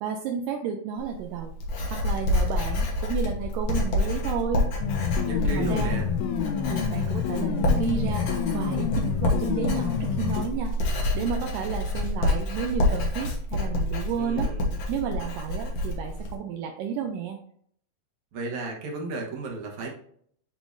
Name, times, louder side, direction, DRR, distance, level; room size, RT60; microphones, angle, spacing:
voice 1, 0.0-1.5 1.9-4.7 5.6-6.0 6.7-10.7 11.1-14.5 14.9-17.4, right 7 dB, 80° right, 3 dB, 2.1 m, -32 dB
Writing, 1.0-16.3, left 1 dB, 60° left, 1.8 m, -28 dB
sound 1, 4.8-10.4, left 8 dB, 75° left, 1.9 m, -28 dB
voice 2, 5.2-6.1 14.2-14.6 18.3-20.0, right 3 dB, 65° right, 0 dB, 2.4 m, -33 dB
10.0 x 3.7 x 2.6 m, 0.63 s
omnidirectional pair, 4.0 m